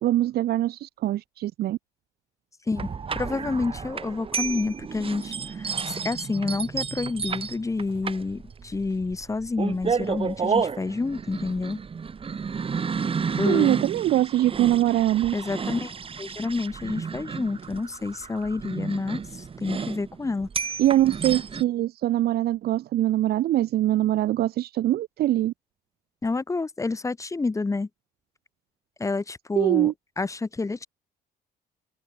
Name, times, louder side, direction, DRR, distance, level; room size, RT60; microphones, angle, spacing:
voice 1, 0.0-1.8 13.5-15.3 20.8-25.5 29.6-29.9, right 14 dB, 70° right, 2.1 m, -23 dB
voice 2, 2.7-11.8 13.4-13.9 15.3-15.9 16.2-20.5 26.2-27.9 29.0-30.9, left 3 dB, 20° left, 2.3 m, -29 dB
sound 1, 2.8-21.6, right 6 dB, 35° right, 5.9 m, -31 dB
cardioid pair, 110°, 17 cm